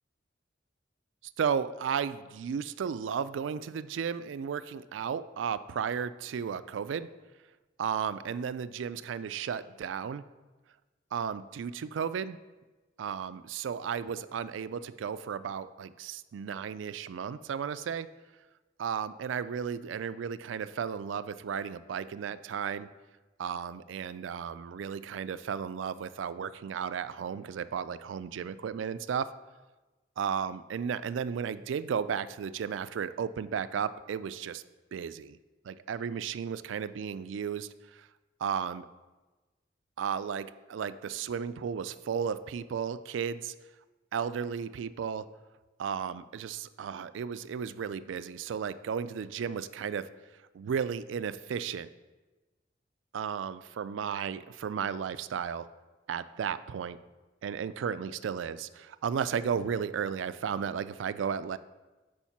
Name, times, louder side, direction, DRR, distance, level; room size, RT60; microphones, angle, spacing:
voice 1, 1.4-7.1 7.8-10.2 11.1-12.4 13.0-18.1 18.8-22.9 23.4-29.3 30.2-34.6 34.9-35.4 35.6-38.1 38.4-38.9 40.0-43.5 44.1-45.3 45.8-50.1 50.5-51.9 53.1-55.7 56.1-57.0 57.4-61.6, right 7 dB, 90° right, 14 dB, 0.3 m, -34 dB
7.1 x 4.8 x 5.9 m, 1.2 s
head